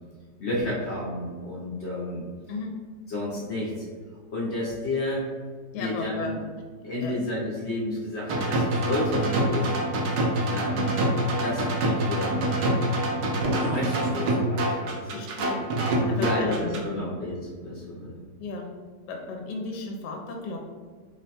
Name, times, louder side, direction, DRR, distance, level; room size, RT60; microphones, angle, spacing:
voice 1, 0.4-2.2 3.1-3.9 4.3-5.2 5.7-6.4 6.8-9.7 10.5-11.0 11.4-12.5 13.5-15.4 16.1-18.2, left 1 dB, 55° left, -6 dB, 0.8 m, -31 dB
voice 2, 5.7-6.3 7.0-7.2 10.4-10.6 15.1-15.7 16.1-17.1 18.4-18.7 19.1-20.6, left 3 dB, 80° left, 1 dB, 1.1 m, -35 dB
sound 1, 8.3-16.8, right 1 dB, 70° right, 1.1 m, -26 dB
3.2 x 2.1 x 4.1 m, 1.5 s
omnidirectional pair, 1.9 m